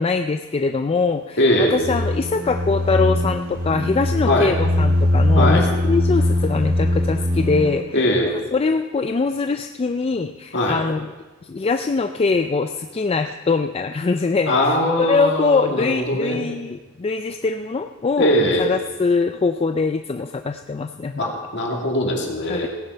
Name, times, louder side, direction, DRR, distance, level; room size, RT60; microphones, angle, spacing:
voice 1, 0.0-8.0 8.5-11.1 11.4-21.2 22.5-22.7, left 4 dB, 25° left, 7 dB, 0.3 m, -23 dB
voice 2, 1.4-1.8 4.3-4.5 5.3-5.7 7.9-8.3 10.5-10.8 14.5-16.4 18.2-18.7 21.2-22.7, left 1 dB, 55° left, 0 dB, 2.4 m, -20 dB
sound 1, 1.8-7.8, left 1 dB, 90° right, 1.8 m, -21 dB
16.5 x 8.9 x 5.6 m, 1.2 s
head